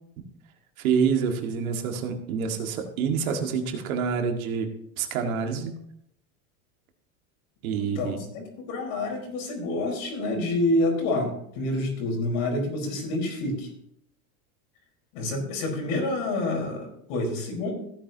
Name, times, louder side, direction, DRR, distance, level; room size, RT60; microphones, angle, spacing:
voice 1, 0.8-4.7 5.0-5.7 7.6-8.2, right 6 dB, 85° right, 4 dB, 2.0 m, -27 dB
voice 2, 7.8-13.7 15.1-17.7, left 2 dB, 65° left, 1 dB, 4.8 m, -28 dB
15.5 x 9.2 x 3.0 m, 0.73 s
supercardioid pair, 130°, 41 cm